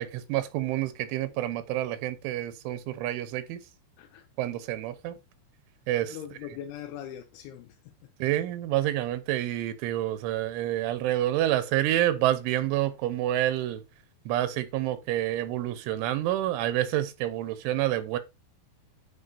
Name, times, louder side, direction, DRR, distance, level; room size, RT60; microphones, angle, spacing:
voice 1, 0.0-3.6 4.4-5.2 5.9-6.2 8.2-13.8 14.3-18.2, right 13 dB, 90° right, 3.2 m, -28 dB
voice 2, 6.0-8.1, left 10 dB, 85° left, 3.1 m, -42 dB
11.5 x 5.2 x 2.7 m
omnidirectional pair, 5.6 m